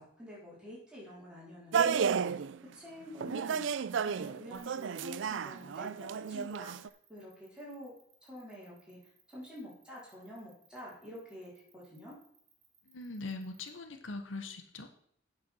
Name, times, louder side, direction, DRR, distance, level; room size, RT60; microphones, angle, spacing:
voice 1, 0.0-2.1 2.7-3.6 4.0-7.9 8.2-9.0 9.3-12.1, left 1 dB, 5° right, -7 dB, 4.4 m, -48 dB
sound 1, 1.7-2.6 3.2-6.9, right 6 dB, 75° right, 0.4 m, -32 dB
sound 2, 4.5-13.7, right 7 dB, 35° right, 2.6 m, -66 dB
voice 2, 12.9-14.9, left 3 dB, 85° left, 6 dB, 1.0 m, -41 dB
8.6 x 6.0 x 6.2 m, 0.65 s
head